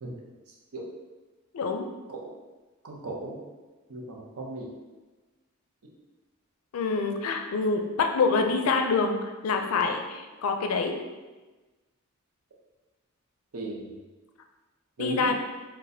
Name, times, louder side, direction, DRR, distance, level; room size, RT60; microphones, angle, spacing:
voice 1, 1.5-1.9 6.7-10.9 15.0-15.4, left 4 dB, 80° left, 5 dB, 0.4 m, -26 dB
voice 2, 2.8-3.4 3.9-4.7 13.5-13.9 15.0-15.3, right 1 dB, 85° right, -2 dB, 0.6 m, -36 dB
4.1 x 2.2 x 2.6 m, 1.2 s
head